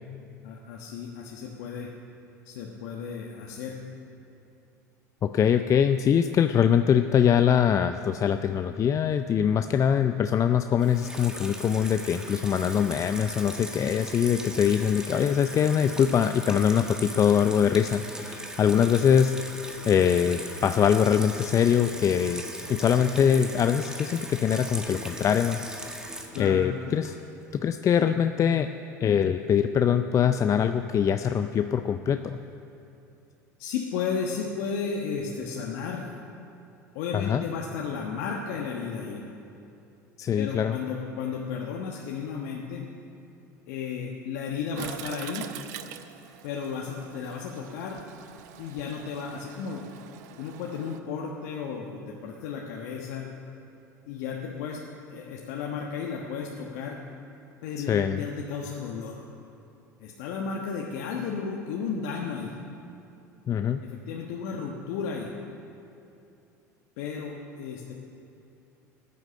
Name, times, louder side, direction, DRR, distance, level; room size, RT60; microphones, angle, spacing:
voice 1, 0.4-1.9 2.4-3.8 26.3-26.6 33.6-36.0 36.9-39.2 40.3-42.9 43.7-45.5 46.4-48.0 48.6-53.3 54.1-54.8 55.1-57.0 57.6-59.2 60.0-62.6 63.8-65.3 67.0-67.9, left 6 dB, 65° left, -1 dB, 1.3 m, -34 dB
voice 2, 5.2-19.4 19.9-22.4 22.7-26.0 26.4-27.1 27.5-28.7 29.0-32.4 37.1-37.4 40.2-40.8 57.8-58.2 63.5-63.8, left 8 dB, 35° left, 9 dB, 0.5 m, -23 dB
Water tap faucet / Sink (filling or washing), 10.8-27.5, right 1 dB, 5° right, 1.8 m, -39 dB
Toilet flush, 44.7-51.0, right 10 dB, 70° right, 0.8 m, -44 dB
15.5 x 9.6 x 6.5 m, 2.7 s
hypercardioid pair, 75°, 10 cm